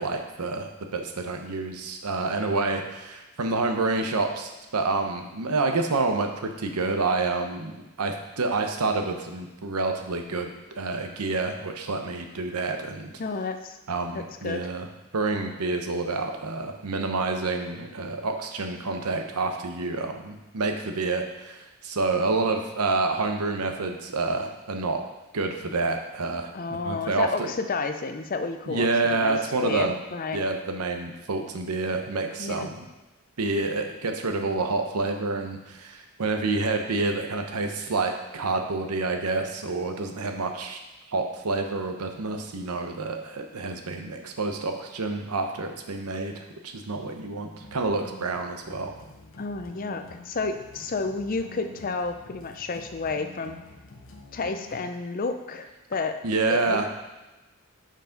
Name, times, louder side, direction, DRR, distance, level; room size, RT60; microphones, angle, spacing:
voice 1, 0.0-7.7 8.0-10.5 10.8-13.1 13.9-14.9 15.1-25.0 25.3-27.5 28.7-30.0 30.3-32.8 33.4-40.8 41.1-48.9 56.2-56.9, right 3 dB, 90° right, 5 dB, 0.8 m, -28 dB
voice 2, 13.2-13.8 14.1-14.6 26.5-28.9 29.1-30.4 32.4-32.7 49.4-53.6 54.3-56.2 56.5-56.9, left 4 dB, 40° left, 7 dB, 0.5 m, -31 dB
sound 1, 47.5-55.0, left 2 dB, 60° left, 0.8 m, -48 dB
6.1 x 4.7 x 5.1 m, 1.1 s
head